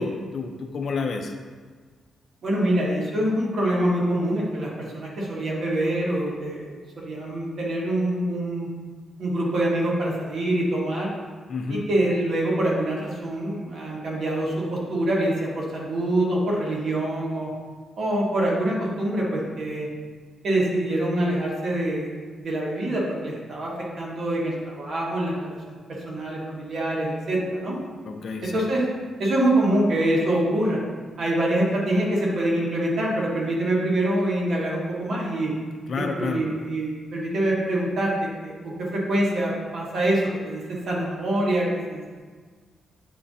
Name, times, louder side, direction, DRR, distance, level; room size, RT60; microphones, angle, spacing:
voice 1, 0.0-1.3 11.5-11.9 28.0-28.7 35.9-36.4, left 4 dB, 50° left, 3 dB, 0.6 m, -29 dB
voice 2, 2.4-8.7 9.2-11.1 11.7-17.5 18.0-19.9 20.4-23.7 24.0-27.8 28.4-28.8 29.2-30.8 31.2-35.5 36.0-42.0, right 1 dB, 55° right, -4 dB, 1.6 m, -25 dB
9.2 x 3.7 x 2.8 m, 1.5 s
cardioid pair, 120°, 0 cm